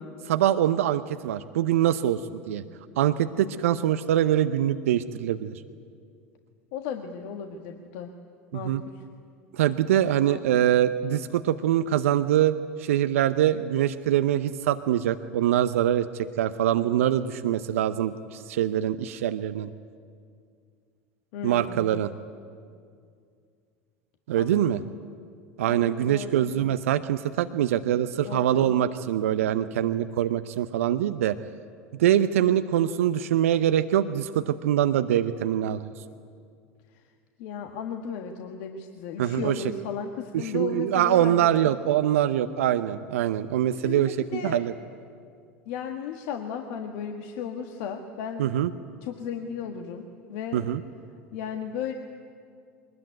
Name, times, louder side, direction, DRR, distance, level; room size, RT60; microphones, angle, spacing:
voice 1, 0.3-2.6 3.0-5.6 8.5-8.8 9.5-19.7 21.4-22.1 24.3-24.8 25.6-31.4 31.9-35.9 39.2-39.6 40.3-44.7 48.4-48.7 50.5-50.8, right 11 dB, 75° right, 11 dB, 0.7 m, -24 dB
voice 2, 6.7-8.1 8.5-9.0 10.2-10.6 21.3-22.0 24.4-24.8 25.7-26.5 28.2-28.7 36.9-37.0 37.4-41.5 43.7-44.6 45.6-48.5 49.0-50.0 50.3-50.7 51.3-51.9, left 7 dB, 60° left, 4 dB, 1.6 m, -35 dB
22.5 x 20.5 x 9.3 m, 2.3 s
hypercardioid pair, 80°, 8 cm